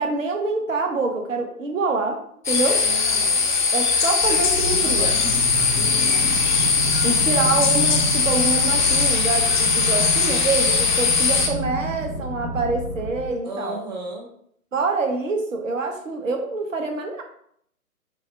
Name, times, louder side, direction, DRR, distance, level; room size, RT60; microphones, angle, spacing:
voice 1, 0.0-2.2 2.5-2.8 3.7-5.2 7.0-13.8 14.7-17.2, right 3 dB, 60° right, 3 dB, 1.1 m, -26 dB
sound 1, 2.4-11.5, left 5 dB, 35° left, 0.5 m, -20 dB
voice 2, 2.7-3.4 5.7-6.3 13.4-14.3, right 2 dB, 30° right, 0 dB, 0.5 m, -35 dB
sound 2, 4.2-13.3, equal, 90° left, 1.0 m, -29 dB
5.7 x 2.1 x 4.4 m, 0.67 s
figure-of-eight pair, 130°, 44 cm